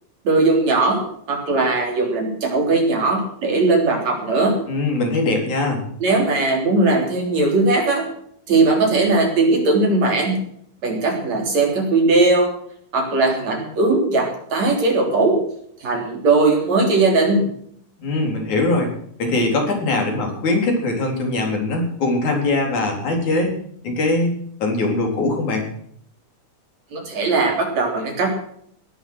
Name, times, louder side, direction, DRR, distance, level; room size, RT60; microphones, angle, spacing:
voice 1, 0.2-4.6 6.0-8.1 8.5-10.4 10.8-12.5 12.9-15.4 15.8-17.4 26.9-28.3, right 3 dB, 50° right, 1 dB, 4.6 m, -19 dB
voice 2, 4.7-5.8 18.0-18.9 19.2-23.6 23.8-25.7, left 2 dB, 55° left, 2 dB, 5.2 m, -21 dB
18.5 x 11.0 x 6.4 m, 0.65 s
omnidirectional pair, 4.0 m